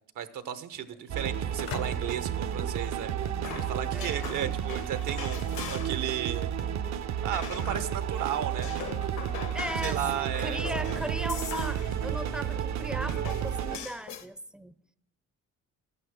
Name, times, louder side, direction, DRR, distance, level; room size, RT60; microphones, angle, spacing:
voice 1, 0.2-6.5 7.2-8.7 9.8-11.0, right 9 dB, 80° right, 1.0 m, -34 dB
sound 1, 1.1-13.8, right 9 dB, 65° right, 0.6 m, -32 dB
sound 2, 1.6-3.5, left 8 dB, 65° left, 0.8 m, -43 dB
sound 3, 3.1-6.1 6.4-8.1 8.4-12.7 13.1-14.3, left 8 dB, 80° left, 1.1 m, -42 dB
voice 2, 3.9-4.3 9.5-10.1 10.4-14.7, right 1 dB, 5° right, 0.4 m, -37 dB
12.0 x 8.3 x 4.7 m
cardioid pair, 90°, 30 cm